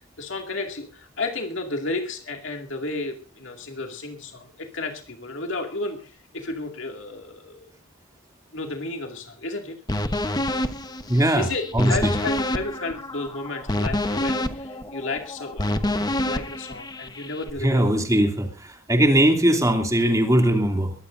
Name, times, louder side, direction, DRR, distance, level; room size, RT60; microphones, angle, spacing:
voice 1, 0.2-7.7 8.5-9.8 11.3-18.0, left 2 dB, 60° left, 3 dB, 2.3 m, -32 dB
sound 1, 9.9-17.5, left 1 dB, 20° left, 1.0 m, -27 dB
voice 2, 11.1-11.4 11.7-11.9 17.6-20.9, right 1 dB, 15° right, 4 dB, 2.7 m, -20 dB
22.0 x 16.5 x 2.6 m, 0.36 s
head